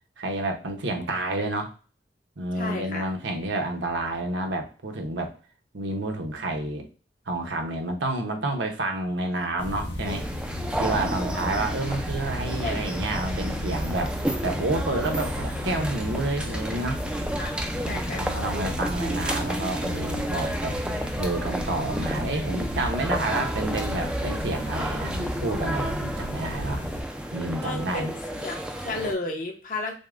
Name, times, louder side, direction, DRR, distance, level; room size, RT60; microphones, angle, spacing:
voice 1, 0.2-1.7 2.4-5.3 5.7-6.9 7.3-10.3 10.8-14.1 14.4-17.0 17.8-20.8 21.2-26.8 27.3-28.1, right 2 dB, 80° right, 3 dB, 0.8 m, -29 dB
voice 2, 2.6-3.0 12.6-12.8 17.4-17.5 17.9-18.3 27.6-30.0, left 2 dB, 45° left, 1 dB, 0.8 m, -33 dB
sound 1, 9.6-27.0, left 1 dB, 70° left, 1.2 m, -33 dB
sound 2, 10.1-29.1, right 1 dB, 5° right, 0.3 m, -32 dB
6.4 x 2.1 x 2.4 m, 0.37 s
head